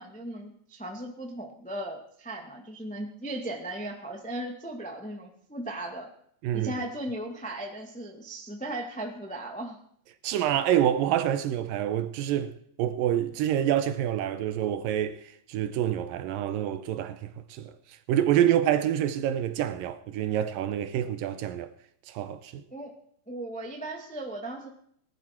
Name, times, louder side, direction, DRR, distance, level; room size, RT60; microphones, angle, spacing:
voice 1, 0.0-6.1 6.5-9.8 22.7-22.9 23.3-24.7, right 1 dB, 5° left, 0.6 m, -37 dB
voice 2, 6.4-6.7 10.2-21.7 22.1-22.6, right 11 dB, 80° right, 2.3 m, -27 dB
19.0 x 12.0 x 4.5 m
omnidirectional pair, 4.3 m